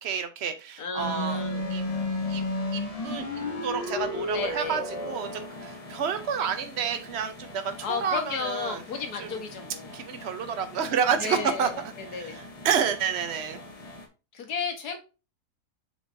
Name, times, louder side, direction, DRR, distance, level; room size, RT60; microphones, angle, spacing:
voice 1, 0.0-1.4 1.7-1.8 2.3-2.5 2.7-3.3 3.6-8.8 9.2-9.4 9.9-13.6, right 7 dB, 45° right, 8 dB, 1.0 m, -29 dB
voice 2, 0.8-1.6 4.3-4.8 7.8-9.9 11.2-11.7 12.0-12.4 14.3-15.0, left 6 dB, 70° left, 5 dB, 1.8 m, -33 dB
sound 1, 1.0-14.1, left 2 dB, 25° left, 1.1 m, -35 dB
7.0 x 4.9 x 2.7 m, 0.31 s
omnidirectional pair, 1.7 m